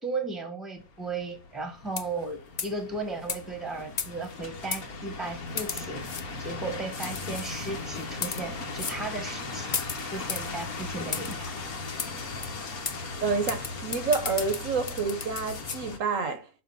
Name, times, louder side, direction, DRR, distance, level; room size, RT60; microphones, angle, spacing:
voice 1, 0.0-6.0 6.4-9.8 10.0-11.6, right 3 dB, ahead, 1.4 m, -35 dB
sound 1, 0.8-16.0, left 3 dB, 75° left, 1.9 m, -38 dB
sound 2, 1.9-2.2 2.6-2.8 3.3-3.4 4.0-4.3 4.7-4.8 5.6-6.2 7.0-7.4 8.1-8.4 8.8-9.0 9.7-10.5 11.1-11.3 12.0-12.1 12.4-12.5 12.8-13.0 13.5-15.8, left 6 dB, 45° left, 0.5 m, -34 dB
voice 2, 13.2-16.5, right 4 dB, 65° right, 1.3 m, -28 dB
7.1 x 4.7 x 5.4 m
omnidirectional pair, 1.5 m